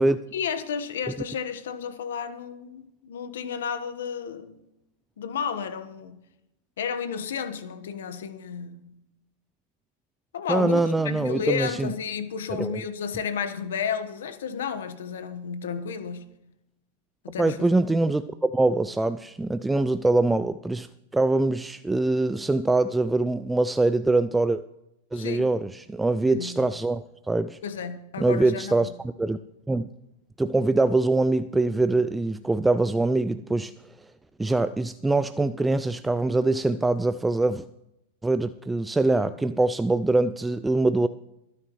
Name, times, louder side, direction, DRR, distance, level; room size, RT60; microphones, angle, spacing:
voice 1, 0.3-4.6 5.2-6.2 6.8-8.9 10.3-16.3 17.2-17.7 25.1-25.5 26.3-26.7 27.6-28.9, left 7 dB, 80° left, 1.3 m, -32 dB
voice 2, 10.5-11.9 12.5-12.8 17.4-20.9 21.1-24.6 25.1-27.6 28.2-28.9 29.2-29.4 29.7-29.9 30.4-33.7 34.4-37.6 38.2-41.1, right 2 dB, 10° right, 0.4 m, -23 dB
23.5 x 9.6 x 3.2 m
hypercardioid pair, 115°, 0 cm